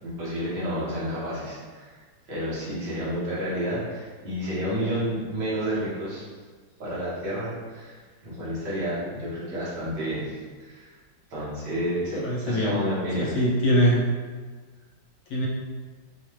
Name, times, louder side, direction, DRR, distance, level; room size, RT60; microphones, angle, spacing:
voice 1, 0.0-1.9 2.3-6.2 6.8-10.9 11.3-13.4, equal, 60° right, -9 dB, 2.0 m, -30 dB
voice 2, 12.2-12.8 13.2-14.0 15.3-15.5, equal, 75° left, -3 dB, 1.6 m, -22 dB
5.1 x 2.4 x 3.1 m, 1.5 s
omnidirectional pair, 2.2 m